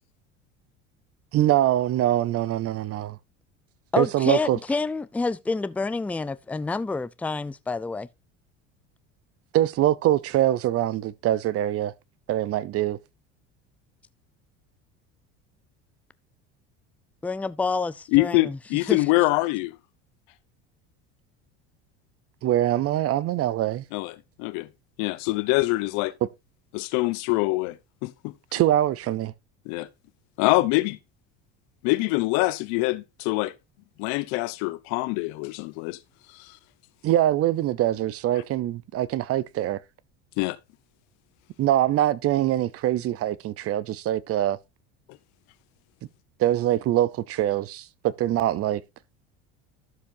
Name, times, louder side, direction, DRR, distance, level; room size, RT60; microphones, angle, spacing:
voice 1, 1.3-3.2 4.0-4.6 9.5-11.9 12.3-13.0 22.4-23.8 26.2-26.3 28.5-29.3 37.0-39.8 41.6-44.6 46.4-48.8, right 13 dB, 50° right, 0.7 m, -23 dB
voice 2, 3.9-8.1 17.2-18.6 18.9-19.0, left 3 dB, 5° left, 0.4 m, -28 dB
voice 3, 18.1-19.7 23.9-24.1 24.4-24.7 25.0-26.1 26.7-27.8 28.0-28.3 29.7-29.9 30.4-31.0 31.8-33.5 34.0-36.0 40.4-40.6, left 21 dB, 70° left, 0.9 m, -24 dB
12.5 x 7.0 x 2.7 m
supercardioid pair, 100°, 31 cm